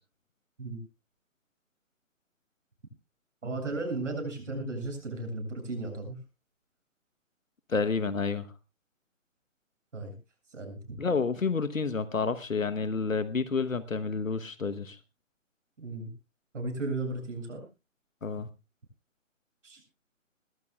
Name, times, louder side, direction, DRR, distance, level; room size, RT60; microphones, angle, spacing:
voice 1, 3.4-6.2 9.9-10.1 10.5-11.0 15.8-16.1 16.5-17.6 19.6-19.8, right 2 dB, 65° right, 4 dB, 7.5 m, -35 dB
voice 2, 7.7-8.5 11.0-15.0 18.2-18.5, left 4 dB, 85° left, 12 dB, 1.2 m, -29 dB
20.5 x 15.5 x 2.4 m, 0.27 s
figure-of-eight pair, 145°, 39 cm